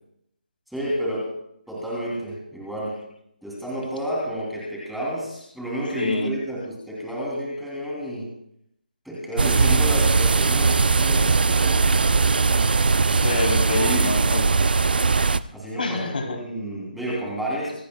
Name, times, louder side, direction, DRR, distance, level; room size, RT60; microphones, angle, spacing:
voice 1, 0.7-1.3 1.7-3.0 3.4-8.3 9.0-12.0 13.7-14.0 15.5-17.7, equal, ahead, -6 dB, 3.3 m, -30 dB
voice 2, 5.9-6.3 13.2-14.6 15.8-16.4, left 2 dB, 65° left, 2 dB, 3.6 m, -26 dB
sound 1, 9.4-15.4, right 4 dB, 70° right, 0.7 m, -19 dB
25.5 x 16.5 x 2.3 m, 0.75 s
hypercardioid pair, 175°, 5 cm